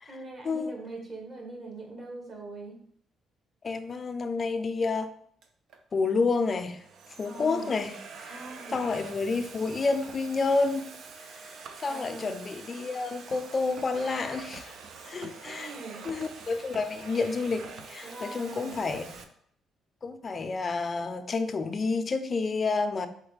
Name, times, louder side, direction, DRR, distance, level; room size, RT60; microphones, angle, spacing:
voice 1, 0.1-2.8 7.2-7.7 8.3-8.8 11.9-12.3 15.4-16.0 18.0-18.8, right 2 dB, 40° right, 0 dB, 1.5 m, -42 dB
voice 2, 3.6-5.1 5.9-6.8 7.2-8.0 8.2-8.4 8.7-10.9 11.8-14.8 15.1-15.7 16.0-19.1 20.0-23.1, left 4 dB, 35° left, 9 dB, 0.5 m, -29 dB
Domestic sounds home sounds, 5.4-5.8 6.5-19.2, right 5 dB, 70° right, 0.5 m, -46 dB
4.1 x 3.9 x 3.3 m, 0.66 s
cardioid pair, 95°, 0 cm